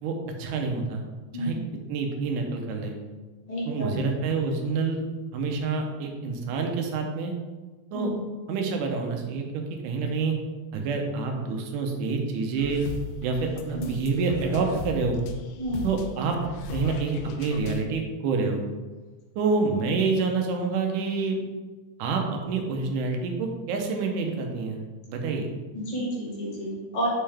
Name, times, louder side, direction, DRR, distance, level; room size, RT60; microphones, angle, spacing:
voice 1, 0.0-1.0 1.3-1.6 1.9-3.0 3.7-5.0 5.3-7.3 7.9-8.1 8.5-10.4 10.7-12.8 13.2-15.2 15.8-16.4 16.7-18.6 19.4-21.4 22.0-24.8 25.1-25.5, right 4 dB, 85° right, 3 dB, 2.4 m, -27 dB
voice 2, 3.5-4.0 7.9-8.2 13.7-13.9 15.6-15.9 25.7-27.1, right 1 dB, 40° left, -7 dB, 0.6 m, -30 dB
sound 1, 12.6-17.8, left 4 dB, 80° left, 1.8 m, -37 dB
5.6 x 5.6 x 3.4 m, 1.3 s
omnidirectional pair, 3.5 m